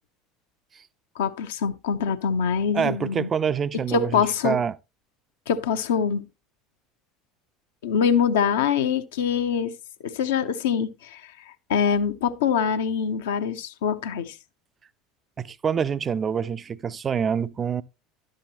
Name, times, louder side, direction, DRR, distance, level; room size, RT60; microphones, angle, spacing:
voice 1, 1.2-3.3 3.9-4.6 5.5-6.2 7.8-9.7 10.0-11.2 11.7-14.3, left 7 dB, 70° left, 0.8 m, -24 dB
voice 2, 2.7-4.8 15.4-17.8, right 7 dB, 30° right, 0.5 m, -26 dB
11.5 x 7.6 x 2.9 m
figure-of-eight pair, 70°, 0 cm